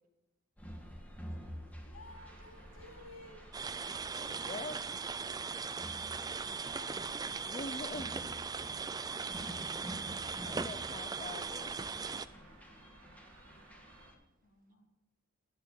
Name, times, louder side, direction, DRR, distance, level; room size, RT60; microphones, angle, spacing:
sound 1, 0.6-14.2, equal, 5° left, 1.7 m, -50 dB
voice 1, 1.8-4.0 6.5-7.5 14.4-14.9, left 2 dB, 70° left, 3.4 m, -56 dB
Traffic noise roadway noise, 2.1-14.1, right 3 dB, 75° right, 2.5 m, -61 dB
sound 2, 3.5-12.3, right 5 dB, 20° right, 0.4 m, -39 dB
voice 2, 4.2-5.0 7.4-8.4 10.4-11.8, left 2 dB, 30° left, 0.6 m, -44 dB
voice 3, 10.0-10.5 13.7-14.5, right 2 dB, 40° right, 1.6 m, -71 dB
17.5 x 10.0 x 4.9 m
head